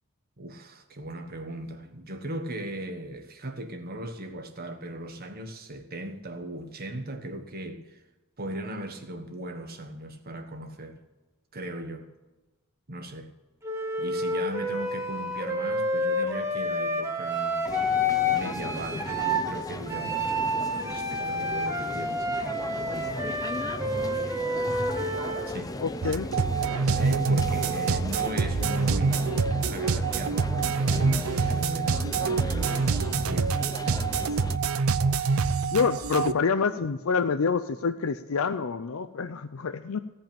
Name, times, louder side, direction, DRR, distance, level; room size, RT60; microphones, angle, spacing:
voice 1, 0.4-8.0 8.4-11.0 11.5-12.1 12.9-13.3 14.0-17.7 18.3-22.6 23.0-23.2 25.4-25.7 27.0-29.4 29.7-33.7, right 1 dB, 45° right, 1.4 m, -38 dB
Wind instrument woodwind instrument, 13.6-19.5 19.9-25.5, left 1 dB, 15° right, 2.1 m, -29 dB
sound 1, 17.6-34.6, left 2 dB, 20° left, 0.5 m, -37 dB
voice 2, 25.8-26.3 35.7-40.0, left 5 dB, 80° left, 0.5 m, -27 dB
sound 2, 26.0-36.3, right 5 dB, 85° right, 0.5 m, -26 dB
16.0 x 5.6 x 8.9 m
head